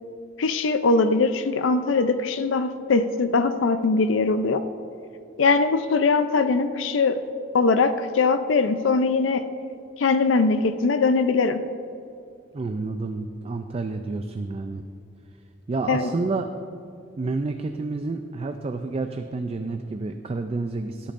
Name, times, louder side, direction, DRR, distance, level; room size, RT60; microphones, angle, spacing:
voice 1, 0.4-4.6 5.4-7.2 7.5-9.5 10.0-11.6 15.9-16.1, left 4 dB, 70° left, 10 dB, 0.5 m, -21 dB
voice 2, 12.5-14.8 15.7-16.5 17.2-21.1, right 3 dB, 30° right, 7 dB, 0.4 m, -29 dB
16.5 x 8.6 x 2.5 m, 2.5 s
head